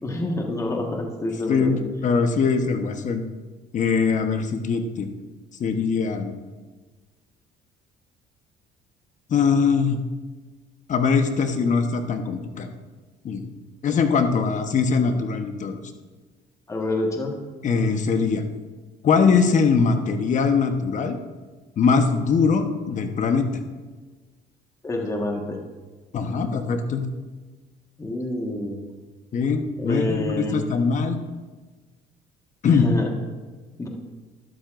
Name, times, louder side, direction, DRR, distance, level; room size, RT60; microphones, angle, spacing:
voice 1, 0.0-1.8 16.7-17.4 24.8-25.6 28.0-28.8 29.8-30.6 32.6-33.1 33.8-33.9, left 2 dB, 20° left, 1 dB, 1.5 m, -27 dB
voice 2, 1.5-3.2 3.7-5.1 5.6-6.3 9.3-10.0 10.9-12.7 13.2-13.5 13.8-15.8 17.6-18.4 19.0-21.2 21.8-23.5 26.1-27.0 29.3-31.2 32.6-32.8, left 5 dB, 45° left, 6 dB, 1.0 m, -22 dB
12.5 x 12.0 x 2.6 m, 1.3 s
cardioid pair, 110°, 17 cm